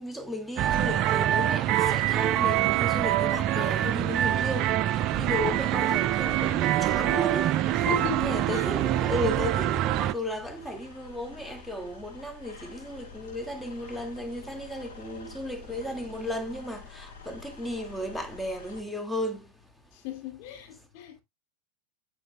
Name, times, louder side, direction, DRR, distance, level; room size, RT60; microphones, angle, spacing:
voice 1, 0.0-7.9 8.2-19.5, left 1 dB, ahead, 2.0 m, -35 dB
sound 1, 0.6-10.1, right 13 dB, 35° right, 0.6 m, -25 dB
sound 2, 1.7-18.8, left 5 dB, 65° left, 5.5 m, -48 dB
voice 2, 7.7-8.7 19.9-21.2, left 9 dB, 45° left, 2.7 m, -36 dB
9.3 x 6.7 x 2.2 m
figure-of-eight pair, 90°, 0 cm